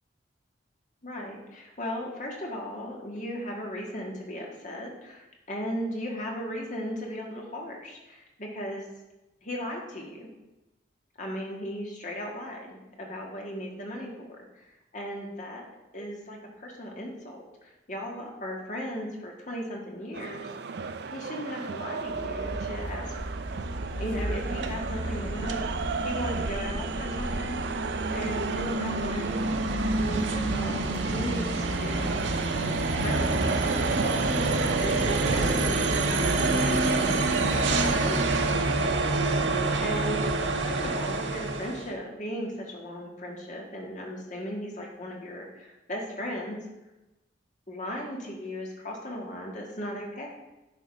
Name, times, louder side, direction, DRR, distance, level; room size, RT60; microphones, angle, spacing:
voice 1, 1.0-8.9 9.4-10.3 11.2-14.3 14.6-14.7 14.9-15.6 15.9-20.5 21.1-23.2 24.0-27.6 28.1-29.5 30.0-32.3 33.0-34.3 34.5-37.2 37.5-38.3 39.8-40.3 40.6-46.6 47.7-50.3, equal, 40° left, 0 dB, 1.8 m, -36 dB
sound 1, 20.1-34.8, right 5 dB, 60° right, 0.4 m, -36 dB
sound 2, 22.1-41.9, right 2 dB, 85° right, 0.9 m, -28 dB
11.0 x 4.1 x 5.2 m, 1.0 s
head